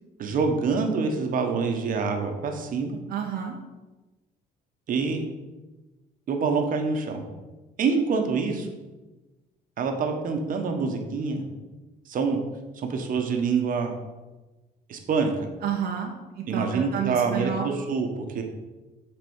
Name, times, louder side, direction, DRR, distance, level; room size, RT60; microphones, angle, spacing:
voice 1, 0.2-3.0 4.9-5.2 6.3-7.2 7.8-8.7 9.8-11.4 12.1-12.4 12.8-13.9 14.9-15.3 16.5-18.4, right 5 dB, 55° right, 4 dB, 1.2 m, -26 dB
voice 2, 3.1-3.5 15.6-17.7, right 7 dB, 70° right, -1 dB, 1.0 m, -30 dB
7.9 x 4.0 x 5.6 m, 1.2 s
cardioid pair, 110°, 17 cm